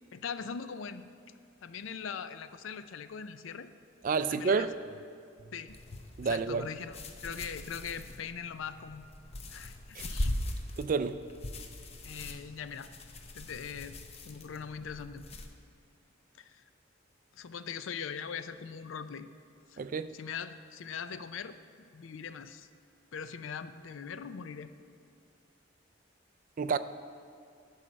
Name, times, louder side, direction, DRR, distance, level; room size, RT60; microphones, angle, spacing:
voice 1, 0.1-1.1 1.6-3.7 4.3-4.7 5.5-5.8 6.2-9.1 9.5-10.3 12.0-12.9 13.3-14.0 14.2-15.3 16.4-16.6 17.3-19.3 19.7-19.8 20.1-21.6 21.9-22.7 23.1-24.7, left 6 dB, 80° left, 11 dB, 0.4 m, -41 dB
voice 2, 4.0-4.7 6.2-6.7 10.0-10.1 10.8-11.2 19.8-20.1 26.6-26.8, right 5 dB, 40° right, 13 dB, 0.3 m, -29 dB
sound 1, 5.7-15.5, left 1 dB, 30° left, 0.6 m, -41 dB
9.8 x 5.7 x 6.2 m, 2.4 s
head